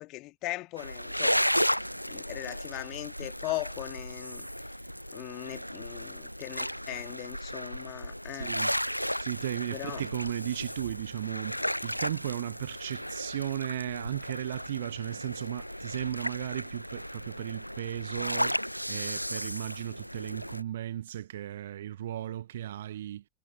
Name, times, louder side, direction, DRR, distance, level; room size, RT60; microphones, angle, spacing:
voice 1, 0.0-1.5 2.1-4.5 5.1-8.5 9.7-10.0, left 20 dB, 40° left, 2.2 m, -39 dB
sound 1, 0.8-20.6, equal, 90° left, 0.5 m, -34 dB
voice 2, 8.3-23.2, right 12 dB, 60° right, 1.0 m, -36 dB
figure-of-eight pair, 90°, 0 cm